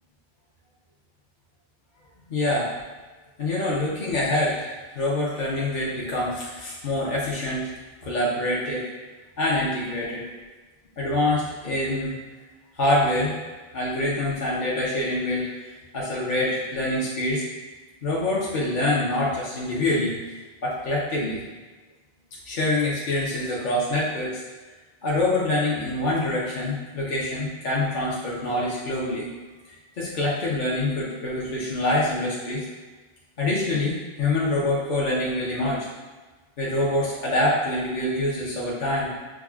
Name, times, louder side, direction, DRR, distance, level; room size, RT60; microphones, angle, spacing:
voice 1, 2.3-2.7 3.4-7.7 8.0-8.8 9.4-10.2 11.0-12.1 12.8-13.4 13.7-15.5 15.9-17.4 18.0-21.4 22.4-24.4 25.0-29.3 30.0-32.6 33.4-35.9 36.6-39.1, left 1 dB, 50° left, -6 dB, 0.8 m, -25 dB
6.1 x 2.2 x 2.3 m, 1.3 s
omnidirectional pair, 1.1 m